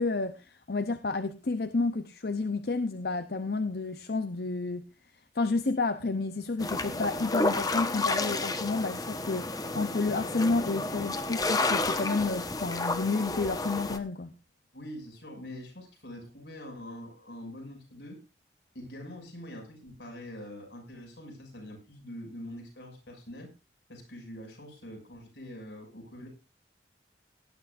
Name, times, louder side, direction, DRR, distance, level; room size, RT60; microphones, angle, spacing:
voice 1, 0.0-4.9 5.3-14.3, left 3 dB, 60° left, 0.7 m, -30 dB
sound 1, 6.6-14.0, left 2 dB, 20° left, 1.1 m, -31 dB
voice 2, 14.7-18.2 18.7-23.5 23.9-26.3, left 1 dB, 80° left, 6.6 m, -44 dB
18.5 x 11.0 x 2.6 m
head